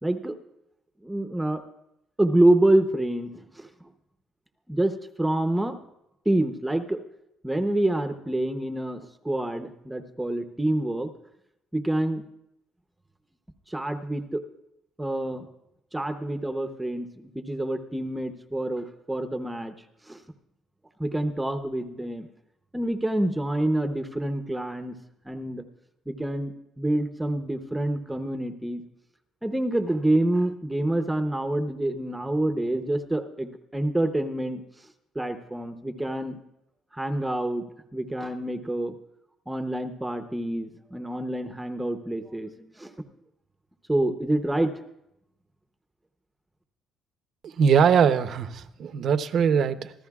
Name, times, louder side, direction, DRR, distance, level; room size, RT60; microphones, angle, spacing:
voice 1, 0.0-0.4 1.0-1.6 2.2-3.7 4.7-5.8 6.3-7.0 7.4-11.1 11.7-12.2 13.7-14.4 15.0-15.5 15.9-19.8 20.1-20.2 21.0-22.3 22.7-25.0 25.3-25.6 26.1-28.8 29.4-34.6 35.1-36.4 36.9-37.6 37.9-38.9 39.5-42.9 43.9-44.7, right 1 dB, 5° right, 8 dB, 0.7 m, -27 dB
voice 2, 47.4-49.9, right 7 dB, 50° right, 10 dB, 0.7 m, -21 dB
25.5 x 14.0 x 2.4 m, 0.83 s
cardioid pair, 135°, 0 cm